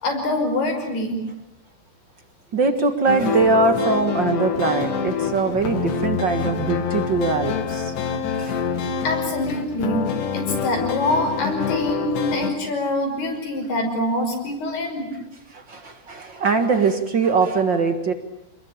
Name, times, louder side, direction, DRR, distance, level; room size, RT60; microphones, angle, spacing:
voice 1, 0.0-1.2 9.0-10.1 10.3-15.1, left 1 dB, 70° left, 4 dB, 7.5 m, -25 dB
voice 2, 2.5-7.9 8.3-8.6 15.5-18.1, right 4 dB, 55° right, 8 dB, 1.3 m, -22 dB
sound 1, 3.1-12.5, left 7 dB, 85° left, 4.4 m, -26 dB
28.5 x 21.5 x 8.9 m, 0.85 s
omnidirectional pair, 4.8 m